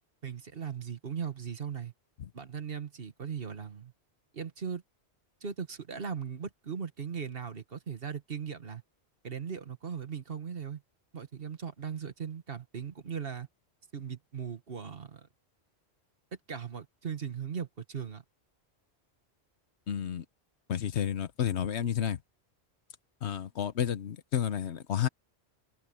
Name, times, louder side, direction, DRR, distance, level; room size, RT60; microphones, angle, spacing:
voice 1, 0.2-1.9 2.3-3.9 4.3-4.8 5.4-8.8 9.2-10.8 11.1-13.5 13.9-15.3 16.5-18.2, right 7 dB, 55° right, 1.6 m, -38 dB
voice 2, 19.9-20.2 20.7-22.2 23.2-25.1, left 9 dB, 80° left, 1.2 m, -31 dB
omnidirectional pair, 1.1 m